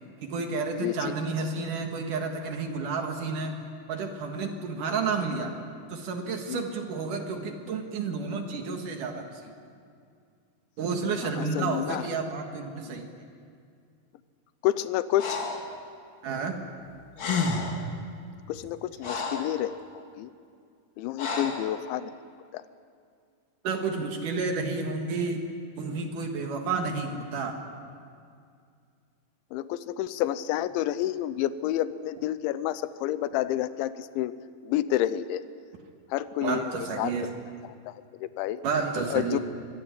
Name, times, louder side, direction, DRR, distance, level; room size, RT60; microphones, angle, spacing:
voice 1, 0.2-3.6 3.9-5.5 5.9-9.5 10.8-13.1 16.2-16.6 21.3-21.5 23.6-25.4 25.8-27.6 36.4-37.3 38.6-39.4, right 4 dB, 60° right, 4 dB, 2.5 m, -31 dB
voice 2, 0.8-1.2 6.5-6.8 11.2-12.1 14.6-15.4 18.5-20.3 21.0-22.1 22.5-22.6 29.5-34.4 34.6-35.4 36.1-37.3 37.9-38.6 39.1-39.4, left 13 dB, 85° left, 14 dB, 3.1 m, -29 dB
Breathing, 15.2-15.7 16.9-17.0 17.2-17.9 18.5-19.6 21.2-21.7, left 4 dB, 45° left, 1.6 m, -30 dB
23.0 x 16.5 x 10.0 m, 2.3 s
omnidirectional pair, 5.3 m